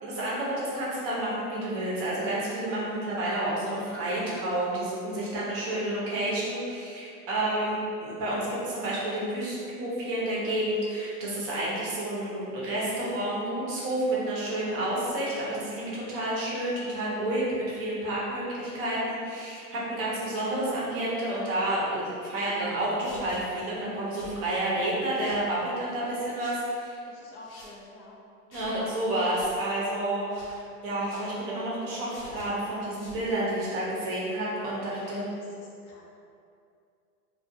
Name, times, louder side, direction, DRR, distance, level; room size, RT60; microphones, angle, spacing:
voice 1, 0.0-27.0 28.5-30.3 30.8-35.2, right 1 dB, 30° right, -6 dB, 0.6 m, -30 dB
sound 1, 23.0-23.4 24.1-24.4 25.1-25.5 26.4-26.6 27.4-27.7 28.5-28.7 29.3-29.5 30.3-30.6 31.1-31.3 32.1-32.5 32.9-33.2, left 2 dB, 85° left, 0.9 m, -49 dB
voice 2, 27.1-28.1 34.9-35.2 35.5-36.0, left 2 dB, 45° left, -4 dB, 0.5 m, -49 dB
2.4 x 2.3 x 2.6 m, 2.5 s
hypercardioid pair, 115°, 47 cm